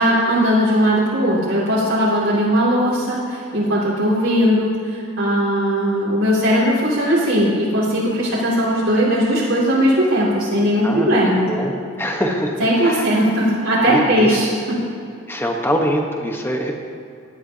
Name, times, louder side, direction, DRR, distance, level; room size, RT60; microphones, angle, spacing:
voice 1, 0.0-11.5 12.6-14.5, equal, 80° right, -8 dB, 2.5 m, -18 dB
voice 2, 10.8-11.2 11.5-11.7 12.0-13.1 13.9-14.4 15.3-16.7, equal, 10° left, 2 dB, 1.1 m, -23 dB
18.0 x 11.0 x 2.8 m, 2.4 s
head